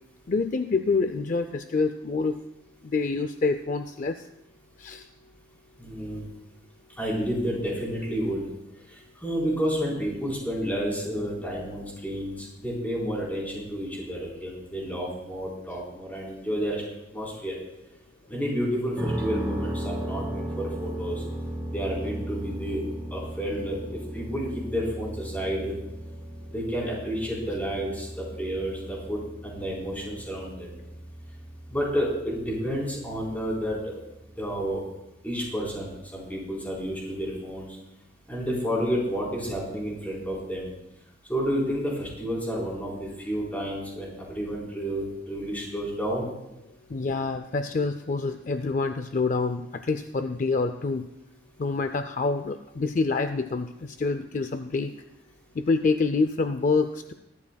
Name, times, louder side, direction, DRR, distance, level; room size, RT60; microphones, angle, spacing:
voice 1, 0.3-2.4 2.8-4.3 4.8-5.1 46.9-51.1 51.6-54.9 55.6-57.1, left 4 dB, 45° left, 9 dB, 0.4 m, -27 dB
voice 2, 5.8-6.2 7.0-8.4 8.9-16.8 17.1-17.5 18.3-21.2 21.7-22.8 23.1-25.7 26.5-30.7 31.7-34.0 34.4-34.8 35.2-37.7 38.3-40.7 41.3-42.9 43.2-46.3, equal, 10° left, -4 dB, 4.0 m, -30 dB
sound 1, 19.0-34.8, equal, 10° right, 2.1 m, -37 dB
21.5 x 12.0 x 2.3 m, 0.90 s
head